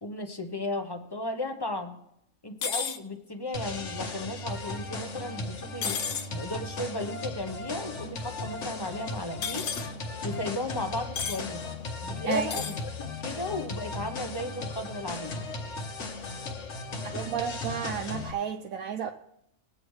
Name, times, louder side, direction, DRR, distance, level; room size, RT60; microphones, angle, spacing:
voice 1, 0.0-2.0 2.4-6.0 6.3-9.7 10.2-11.7 12.0-15.4, left 1 dB, 20° left, 0.8 m, -35 dB
sound 1, 2.6-3.0 5.8-6.3 9.4-9.9 11.2-11.4 12.4-12.8, left 6 dB, 75° left, 1.2 m, -32 dB
sound 2, 3.5-18.3, left 3 dB, 55° left, 1.4 m, -36 dB
voice 2, 17.0-19.1, right 7 dB, 75° right, 1.1 m, -32 dB
20.5 x 8.5 x 3.2 m
omnidirectional pair, 1.5 m